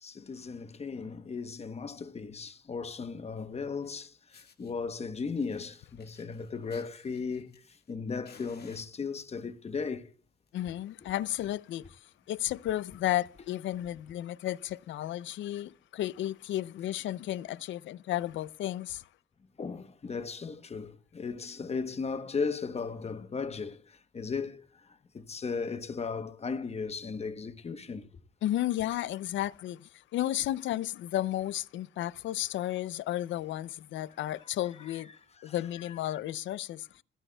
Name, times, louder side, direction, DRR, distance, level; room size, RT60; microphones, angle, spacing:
voice 1, 0.0-10.1 11.0-11.1 19.6-28.1 35.2-35.6 35.9-36.0, left 5 dB, 30° left, 1.0 m, -36 dB
Fire, 3.8-3.9 4.3-4.7 5.3-7.9 8.2-9.4 10.2-10.5 10.8-10.9 11.3-11.4 11.6-11.9 12.4-12.5 13.4-13.5, left 6 dB, 55° left, 1.8 m, -58 dB
voice 2, 10.5-12.0 12.3-19.1 28.4-35.1 35.4-37.0, left 13 dB, 70° left, 0.5 m, -33 dB
26.5 x 10.0 x 2.3 m
cardioid pair, 90°, 20 cm